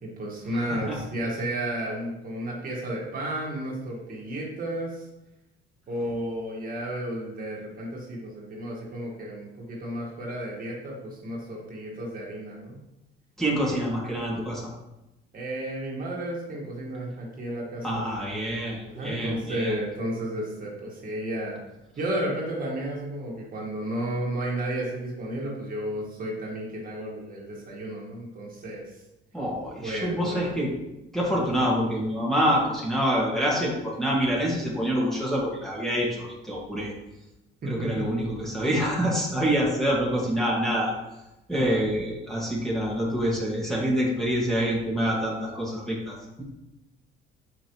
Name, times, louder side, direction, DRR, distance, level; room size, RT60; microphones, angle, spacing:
voice 1, 0.0-5.1 5.9-12.8 15.3-18.0 18.8-21.6 22.0-29.0 29.8-30.5 37.6-38.1 41.5-41.8, right 1 dB, 40° right, -3 dB, 1.7 m, -32 dB
voice 2, 13.4-14.6 17.8-19.7 29.3-30.7 31.1-36.9 37.7-40.9 41.5-46.4, equal, ahead, -6 dB, 1.7 m, -26 dB
7.0 x 5.1 x 3.1 m, 0.94 s
cardioid pair, 120°, 21 cm